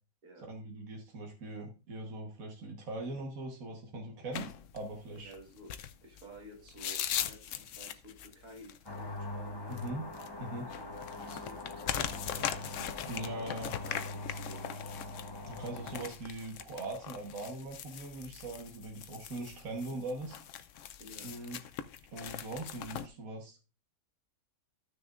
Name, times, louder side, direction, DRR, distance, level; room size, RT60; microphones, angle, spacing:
voice 1, 0.4-5.3 9.7-10.1 10.4-10.7 13.1-13.7 15.4-20.4 21.2-21.6 22.1-23.6, right 2 dB, 70° right, 1 dB, 1.8 m, -41 dB
sound 1, 4.3-23.1, left 9 dB, 65° left, 0.9 m, -41 dB
voice 2, 5.2-5.7 6.0-9.8 10.8-13.0 13.4-13.5 13.8-14.8 21.0-21.3, right 1 dB, 85° right, 2 dB, 2.5 m, -52 dB
sound 2, 8.9-16.0, left 2 dB, 20° left, 0.8 m, -43 dB
14.5 x 6.6 x 2.5 m, 0.31 s
omnidirectional pair, 1.6 m